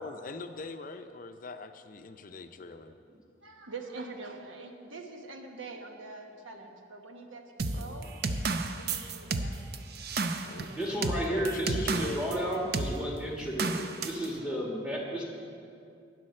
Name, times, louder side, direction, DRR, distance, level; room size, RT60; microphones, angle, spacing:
voice 1, 0.0-3.0 7.7-8.1 10.2-10.7 11.1-12.2, left 3 dB, 45° left, 9 dB, 0.5 m, -42 dB
voice 2, 3.4-8.1 8.8-9.8 10.5-10.8 11.1-11.2, right 3 dB, 85° right, 3 dB, 1.1 m, -44 dB
sound 1, 7.6-12.4 12.7-13.0 13.6-14.3, right 3 dB, 55° right, 0.5 m, -31 dB
voice 3, 10.7-15.2, equal, 5° right, -2 dB, 1.5 m, -32 dB
13.0 x 9.8 x 4.3 m, 2.5 s
head